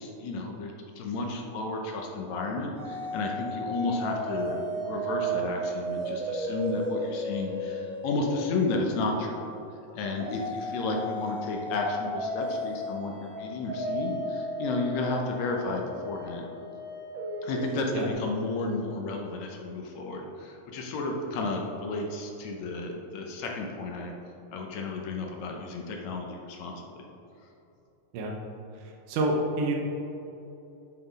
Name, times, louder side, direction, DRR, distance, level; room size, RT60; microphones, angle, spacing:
voice 1, 0.0-9.4 9.9-16.5 17.4-24.1 24.5-26.7, left 3 dB, 75° left, 1 dB, 1.8 m, -32 dB
sound 1, 2.8-9.0 10.2-18.1, right 1 dB, 50° right, 2.0 m, -34 dB
voice 2, 28.8-29.7, right 2 dB, 80° right, 0 dB, 2.3 m, -28 dB
8.0 x 5.2 x 4.0 m, 2.9 s
omnidirectional pair, 3.7 m